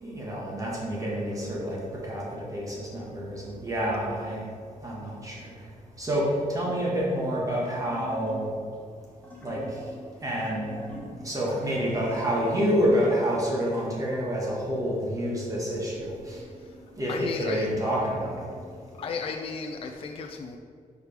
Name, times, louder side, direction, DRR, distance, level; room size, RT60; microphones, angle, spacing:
voice 1, 0.0-4.4 4.8-5.5 6.0-8.5 9.4-9.6 10.2-11.0 11.2-16.4 17.0-18.5, equal, 25° right, -5 dB, 1.5 m, -28 dB
sound 1, 7.0-13.8, equal, 10° left, 1.4 m, -46 dB
voice 2, 17.1-17.8 18.9-20.6, left 5 dB, 40° left, 3 dB, 0.4 m, -35 dB
4.8 x 4.8 x 5.0 m, 2.2 s
wide cardioid pair, 160°, 14 cm